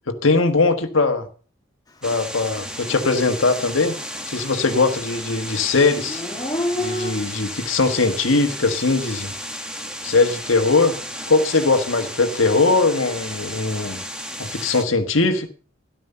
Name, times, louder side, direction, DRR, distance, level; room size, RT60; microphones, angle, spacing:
voice 1, 0.1-1.3 2.0-4.0 4.3-6.2 6.8-9.3 10.0-11.0 11.3-14.0 14.4-15.5, left 3 dB, 80° left, 1.4 m, -20 dB
sound 1, 2.0-14.8, equal, 5° right, 1.5 m, -33 dB
Dog / Siren, 2.8-2.9 3.3-4.8 5.0-7.1, left 1 dB, 20° left, 1.6 m, -29 dB
13.5 x 11.5 x 5.5 m
head